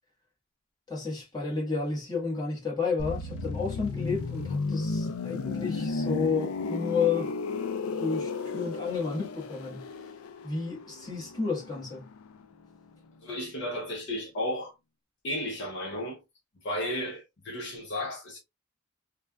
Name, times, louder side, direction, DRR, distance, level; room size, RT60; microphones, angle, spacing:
voice 1, 0.9-7.3 8.0-9.9 10.4-12.1, left 4 dB, 20° left, 1.2 m, -31 dB
sound 1, 3.0-12.7 12.9-13.1, left 4 dB, 85° left, 0.4 m, -34 dB
voice 2, 13.2-14.7 15.2-16.2 16.6-18.4, left 1 dB, 55° left, 0.7 m, -33 dB
3.2 x 2.3 x 2.2 m
head